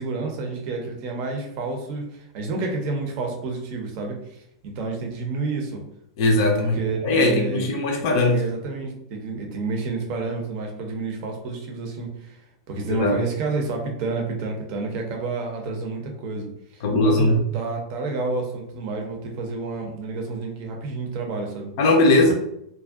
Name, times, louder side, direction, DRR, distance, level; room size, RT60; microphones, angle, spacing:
voice 1, 0.0-5.8 6.4-7.7 8.3-12.4 12.7-21.7 22.2-22.3, right 3 dB, 45° right, 2 dB, 0.6 m, -30 dB
voice 2, 6.2-8.4 13.0-13.2 16.8-17.4 21.8-22.3, left 2 dB, 50° left, 2 dB, 0.4 m, -19 dB
2.5 x 2.2 x 2.3 m, 0.77 s
figure-of-eight pair, 90°, 2 cm